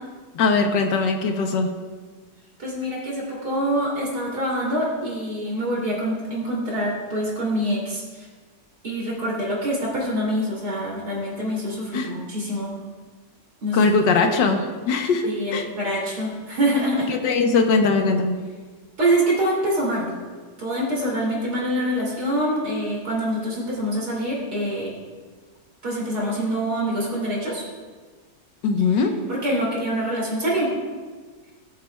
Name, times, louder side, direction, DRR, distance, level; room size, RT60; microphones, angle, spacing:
voice 1, 0.3-1.7 11.9-12.1 13.7-15.6 17.1-18.4 28.6-29.1, left 4 dB, 80° left, 4 dB, 1.5 m, -20 dB
voice 2, 2.6-8.3 8.8-12.7 13.6-13.9 15.2-17.1 19.0-20.1 20.6-24.9 25.8-27.6 29.3-30.7, right 1 dB, 60° right, -4 dB, 3.4 m, -25 dB
18.5 x 7.4 x 2.3 m, 1.4 s
omnidirectional pair, 1.9 m